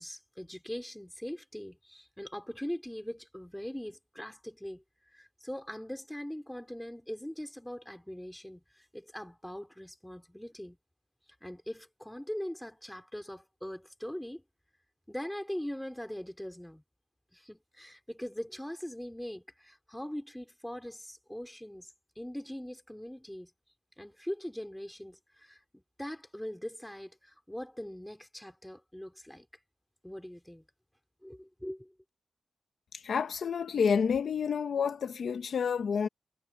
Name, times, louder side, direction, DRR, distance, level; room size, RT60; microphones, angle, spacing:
voice 1, 0.0-4.8 5.1-10.8 11.4-14.4 15.1-16.8 17.3-21.9 22.2-23.5 24.0-29.5 30.0-30.6 31.2-31.9, equal, 5° left, 3.8 m, -41 dB
voice 2, 32.9-36.1, left 6 dB, 55° left, 1.0 m, -29 dB
wide cardioid pair, 155°, 0 cm